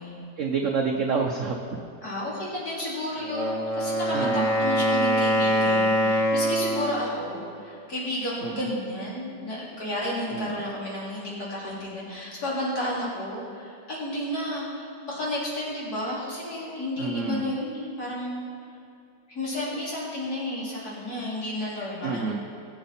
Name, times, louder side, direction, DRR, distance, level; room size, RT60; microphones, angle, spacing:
voice 1, 0.4-1.8 4.1-4.6 8.4-8.7 10.3-10.6 17.0-17.5 22.0-22.4, right 5 dB, 55° right, 2 dB, 1.0 m, -28 dB
voice 2, 2.0-18.4 19.3-22.4, left 1 dB, 55° left, -6 dB, 3.7 m, -32 dB
Wind instrument woodwind instrument, 3.2-7.0, equal, 25° right, 1.4 m, -24 dB
20.5 x 7.6 x 4.3 m, 2.6 s
omnidirectional pair, 1.9 m